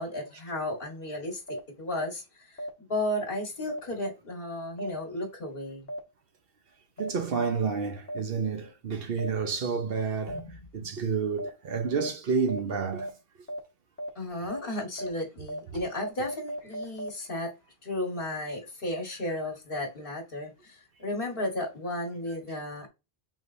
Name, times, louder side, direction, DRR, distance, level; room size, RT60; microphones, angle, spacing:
voice 1, 0.0-5.9 10.3-10.6 14.1-17.5 17.8-22.9, left 1 dB, 60° left, 1.6 m, -34 dB
sound 1, 1.5-1.6 2.6-2.7 3.7-3.8 4.8-4.9 5.9-6.0 7.0-7.1 8.1-8.2 9.2-9.3 10.3-10.4 11.4-11.5 12.0-12.1 12.5-12.6 13.0-13.1 13.5-13.6 14.0-14.1 14.5-14.6 15.0-15.1 15.5-15.6 16.0-17.1, right 1 dB, 15° left, 1.0 m, -35 dB
voice 2, 7.0-10.4 10.7-13.1, right 5 dB, 65° right, 1.0 m, -29 dB
5.0 x 3.7 x 2.6 m
omnidirectional pair, 1.1 m